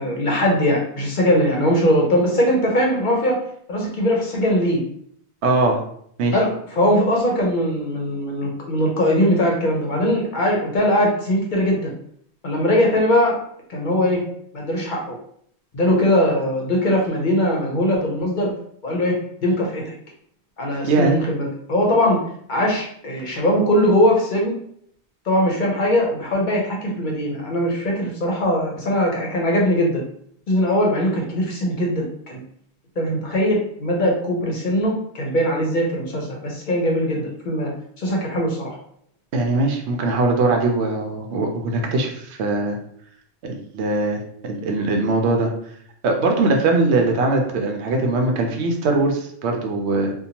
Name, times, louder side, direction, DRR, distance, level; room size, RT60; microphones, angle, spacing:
voice 1, 0.0-3.4 3.7-4.8 6.3-11.9 12.4-13.4 13.7-14.2 14.5-15.2 15.7-18.5 18.8-19.9 20.6-22.2 22.5-24.5 25.3-30.0 30.5-32.4 33.0-37.7 38.0-38.8, equal, 55° left, -1 dB, 0.7 m, -20 dB
voice 2, 5.4-5.8 6.2-6.4 20.8-21.2 39.3-42.8 43.5-45.5 46.0-50.1, right 2 dB, 80° right, 2 dB, 0.9 m, -21 dB
2.7 x 2.2 x 2.8 m, 0.66 s
omnidirectional pair, 1.1 m